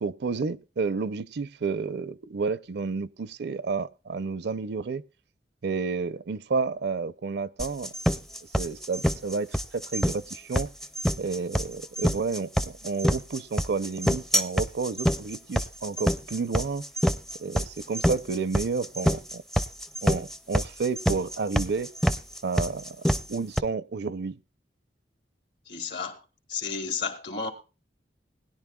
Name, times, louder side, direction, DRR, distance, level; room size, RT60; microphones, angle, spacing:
voice 1, 0.0-5.0 5.6-7.9 8.6-10.7 11.2-16.8 17.4-19.4 20.0-21.9 22.4-23.0 23.3-24.4, right 4 dB, 65° right, 0.5 m, -30 dB
sound 1, 7.6-23.6, equal, ahead, 0.5 m, -26 dB
voice 2, 25.7-26.2 26.5-27.5, left 5 dB, 70° left, 2.2 m, -32 dB
20.5 x 10.5 x 2.3 m
head